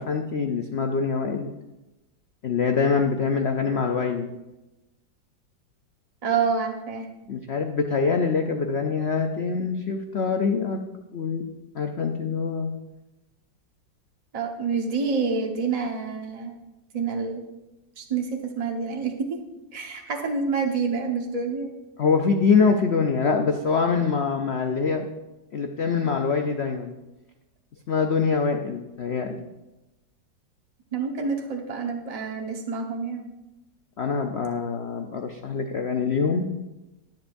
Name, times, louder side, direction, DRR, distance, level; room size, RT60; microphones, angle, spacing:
voice 1, 0.0-1.5 2.4-4.3 7.3-10.8 11.1-11.5 11.7-12.7 22.0-25.0 25.5-27.0 27.9-29.4 34.0-36.5, left 5 dB, 90° left, 4 dB, 0.5 m, -24 dB
voice 2, 6.2-7.1 14.3-16.6 16.9-17.5 18.0-19.4 19.7-21.7 30.9-33.2, right 5 dB, 25° right, 1 dB, 1.0 m, -27 dB
21.5 x 7.6 x 2.6 m, 1.0 s
omnidirectional pair, 2.0 m